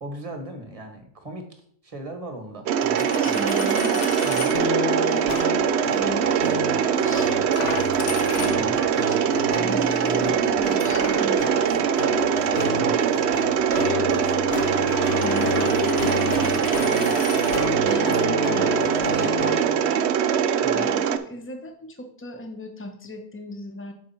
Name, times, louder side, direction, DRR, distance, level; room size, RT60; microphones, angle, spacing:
voice 1, 0.0-3.5 4.2-4.5 8.6-8.8 12.7-13.0 20.6-20.9, right 1 dB, 25° right, 4 dB, 1.0 m, -38 dB
Mechanisms, 2.7-21.2, right 8 dB, 80° right, 0.6 m, -22 dB
Coin (dropping), 2.8-4.6 5.3-5.5 7.5-9.0 10.8-17.6, left 6 dB, 70° left, 1.3 m, -35 dB
voice 2, 3.2-4.2 4.6-10.2 10.5-12.7 13.6-14.6 15.0-16.7 17.0-17.2 17.8-20.2 20.7-23.9, left 2 dB, 15° left, 5 dB, 0.4 m, -38 dB
sound 1, 4.5-19.8, left 4 dB, 40° left, 0.9 m, -31 dB
7.4 x 4.8 x 4.3 m, 0.62 s
omnidirectional pair, 1.7 m